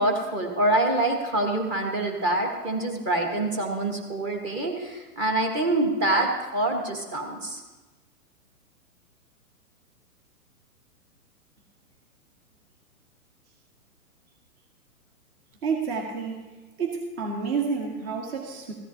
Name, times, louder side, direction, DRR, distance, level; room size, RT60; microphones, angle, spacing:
voice 1, 0.0-7.6, right 1 dB, 25° right, 2 dB, 1.4 m, -25 dB
voice 2, 15.6-16.4 16.8-18.7, right 5 dB, 45° right, 0 dB, 1.8 m, -29 dB
15.0 x 13.0 x 2.8 m, 1.2 s
hypercardioid pair, 125°, 45 cm